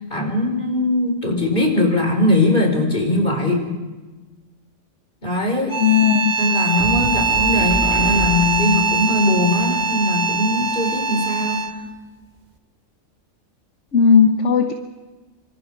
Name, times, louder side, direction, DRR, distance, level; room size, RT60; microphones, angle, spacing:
voice 1, 0.1-3.6 5.2-5.8 6.4-11.6, left 1 dB, 40° left, 3 dB, 4.7 m, -20 dB
sound 1, 5.7-11.9, right 4 dB, 35° right, 1.5 m, -22 dB
voice 2, 5.8-6.3 13.9-14.7, left 7 dB, 65° left, 5 dB, 1.5 m, -15 dB
sound 2, 6.8-10.3, right 1 dB, 85° right, 3.8 m, -30 dB
27.5 x 25.5 x 4.7 m, 1.2 s
omnidirectional pair, 1.3 m